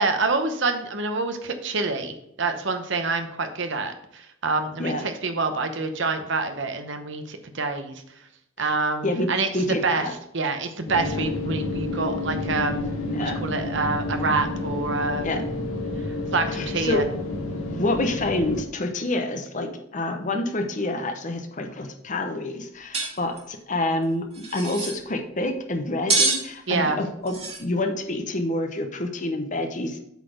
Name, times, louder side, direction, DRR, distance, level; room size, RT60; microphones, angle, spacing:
voice 1, 0.0-8.3 8.6-10.1 10.3-12.9 13.2-15.3 16.0-17.0 26.7-27.0, right 3 dB, 60° right, 7 dB, 0.9 m, -27 dB
voice 2, 9.5-10.1 13.1-13.4 15.2-15.4 16.6-17.0 17.7-30.0, left 2 dB, 35° left, 5 dB, 0.8 m, -27 dB
sound 1, 10.9-18.6, left 2 dB, 80° left, 1.5 m, -30 dB
sound 2, 22.9-23.1 23.4-23.5 24.3-25.0 26.1-26.4 27.3-27.6, right 3 dB, 30° right, 1.7 m, -24 dB
8.1 x 4.1 x 5.0 m, 0.78 s
head